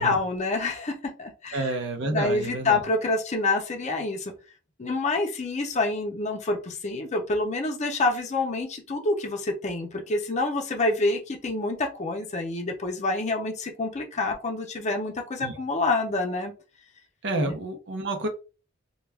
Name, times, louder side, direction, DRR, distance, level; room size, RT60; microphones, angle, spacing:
voice 1, 0.0-1.7 2.1-4.3 4.8-16.5 17.3-17.6, left 2 dB, 35° left, 0.6 m, -27 dB
voice 2, 1.5-2.8 15.4-15.6 17.2-18.3, right 2 dB, 65° right, 0.6 m, -29 dB
2.2 x 2.2 x 3.3 m
head